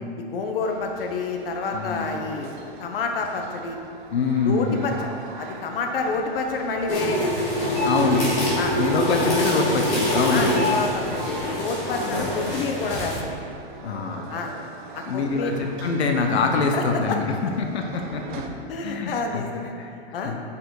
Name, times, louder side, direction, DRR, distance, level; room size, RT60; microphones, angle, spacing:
voice 1, 0.2-2.5 2.8-3.8 4.4-4.9 5.4-7.3 8.0-8.2 8.6-8.8 10.3-13.2 14.3-14.6 14.9-15.6 16.7-17.2 18.7-19.7 20.1-20.3, left 4 dB, 60° left, 3 dB, 1.0 m, -28 dB
sound 1, 0.6-18.5, right 4 dB, 50° right, 0.9 m, -41 dB
voice 2, 1.7-2.1 4.1-4.8 7.8-8.4 8.8-10.6 12.0-12.3 13.8-14.3 15.1-17.3 17.6-18.4 18.8-19.4 19.8-20.4, left 4 dB, 80° left, 3 dB, 1.0 m, -25 dB
sound 2, 6.9-13.1, left 1 dB, 20° left, 2.0 m, -25 dB
8.4 x 5.9 x 4.8 m, 2.4 s
hypercardioid pair, 165°, 32 cm